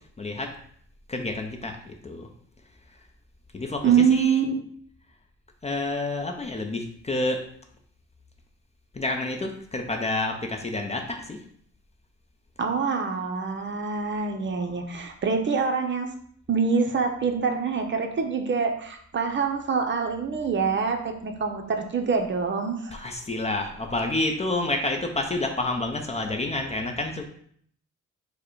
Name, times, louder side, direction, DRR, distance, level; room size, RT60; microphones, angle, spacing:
voice 1, 0.2-0.5 1.1-2.3 3.5-4.4 5.6-7.4 8.9-11.4 22.9-27.3, left 2 dB, 20° left, 3 dB, 0.6 m, -29 dB
voice 2, 3.8-4.6 12.6-16.1 16.5-23.0, right 5 dB, 40° right, 4 dB, 0.7 m, -25 dB
4.5 x 2.2 x 4.6 m, 0.63 s
cardioid pair, 90°, 30 cm